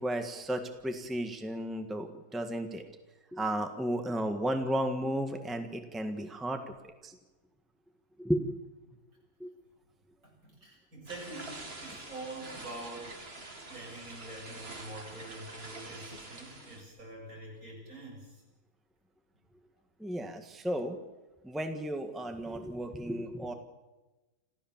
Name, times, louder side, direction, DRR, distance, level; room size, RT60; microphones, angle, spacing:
voice 1, 0.0-2.8 3.3-6.6 7.0-7.1 8.2-8.6 9.4-9.5 20.0-21.0 21.4-23.5, right 1 dB, ahead, 6 dB, 1.5 m, -33 dB
voice 2, 10.2-13.4 13.7-18.4, right 2 dB, 65° right, -2 dB, 8.0 m, -45 dB
sound 1, 11.1-16.8, right 2 dB, 40° right, 2.7 m, -46 dB
27.0 x 15.0 x 7.4 m, 1.1 s
omnidirectional pair, 1.6 m